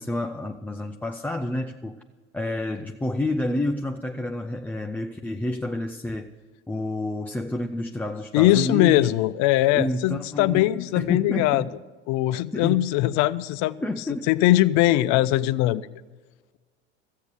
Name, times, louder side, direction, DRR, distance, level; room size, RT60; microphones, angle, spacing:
voice 1, 0.0-2.0 2.3-6.3 6.7-9.1 9.7-10.6 10.9-11.7 12.5-12.9 13.8-14.3, left 2 dB, 5° left, 3 dB, 0.4 m, -29 dB
voice 2, 8.3-11.6 12.1-13.8 14.3-15.9, left 15 dB, 55° left, 16 dB, 0.6 m, -21 dB
13.5 x 8.4 x 6.6 m, 1.4 s
hypercardioid pair, 80°, 35 cm